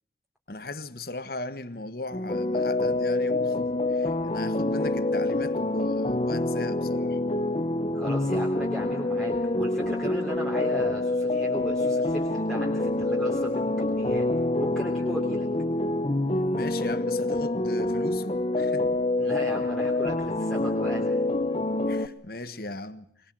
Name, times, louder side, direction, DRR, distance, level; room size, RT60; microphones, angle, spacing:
voice 1, 0.5-7.2 16.5-18.9 21.9-23.1, left 2 dB, 55° left, 1.4 m, -38 dB
sound 1, 2.1-22.1, left 2 dB, 30° left, 0.9 m, -26 dB
voice 2, 7.9-14.3 14.6-15.5 19.2-21.2, equal, ahead, 3.4 m, -36 dB
24.5 x 21.5 x 7.8 m
head